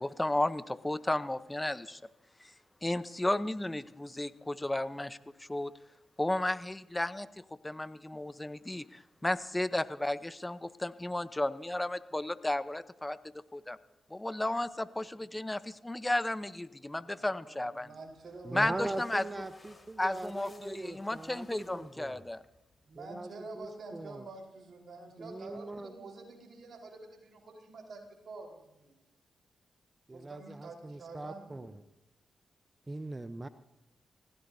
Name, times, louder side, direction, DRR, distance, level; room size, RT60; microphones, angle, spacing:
voice 1, 0.0-2.0 2.4-2.5 2.8-5.7 6.2-7.3 7.6-13.2 13.5-13.8 14.1-17.9 18.5-19.2 20.0-22.4, left 1 dB, 20° left, 14 dB, 0.9 m, -33 dB
voice 2, 16.9-18.6 22.8-29.0 30.1-31.8, right 3 dB, 65° right, 1 dB, 4.4 m, -48 dB
sound 1, 18.0-23.1, left 2 dB, 35° left, 4.2 m, -59 dB
voice 3, 18.4-22.3 22.9-24.3 25.2-26.0 30.1-31.8 32.9-33.5, right 2 dB, 30° right, 11 dB, 0.7 m, -41 dB
30.0 x 16.0 x 2.8 m, 0.94 s
supercardioid pair, 40°, 0 cm